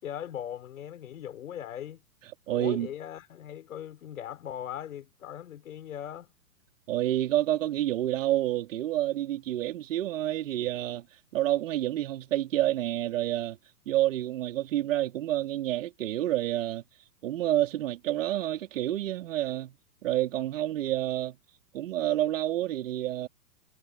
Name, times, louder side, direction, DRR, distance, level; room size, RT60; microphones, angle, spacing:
voice 1, 0.0-2.0 2.5-6.3, left 10 dB, 55° left, 6.2 m, -39 dB
voice 2, 2.5-2.9 6.9-11.0 11.3-13.6 13.9-16.8 17.2-19.7 20.0-21.4 21.7-23.3, right 13 dB, 50° right, 3.8 m, -28 dB
figure-of-eight pair, 110°, 49 cm